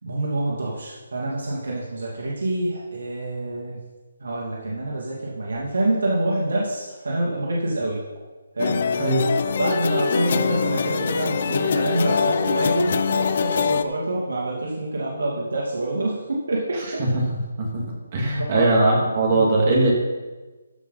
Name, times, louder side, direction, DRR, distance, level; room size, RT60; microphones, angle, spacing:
voice 1, 0.0-3.8 4.2-8.0 8.6-8.8 9.6-17.0 18.4-18.7 19.3-19.4, right 1 dB, 75° right, -4 dB, 2.7 m, -26 dB
sound 1, 8.6-13.8, left 6 dB, 45° left, 0.6 m, -23 dB
voice 2, 9.0-9.3 17.0-17.2 17.6-17.7 18.1-19.9, right 2 dB, 30° right, -2 dB, 2.5 m, -20 dB
14.0 x 5.6 x 5.8 m, 1.2 s
hypercardioid pair, 170°, 0 cm